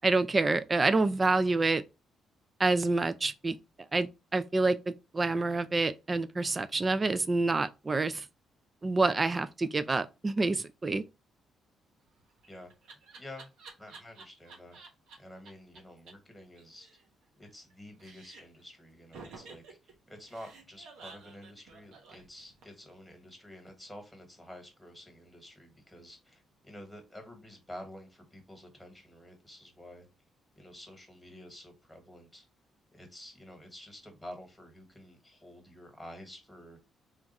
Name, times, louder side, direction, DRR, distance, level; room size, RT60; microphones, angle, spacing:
voice 1, 0.0-1.8 2.6-3.6 3.9-8.3 8.8-11.0, right 3 dB, 25° right, 0.4 m, -27 dB
Laughter, 12.1-15.2 15.4-15.5 15.7-15.8 16.1-16.2 16.4-17.7 18.0-18.6 19.1-22.9, right 4 dB, 85° right, 1.0 m, -51 dB
voice 2, 13.1-13.5 13.8-14.8 15.2-16.9 17.4-30.1 30.5-32.5 32.9-36.8, left 1 dB, ahead, 1.5 m, -49 dB
3.5 x 2.5 x 4.1 m
cardioid pair, 90°, 0 cm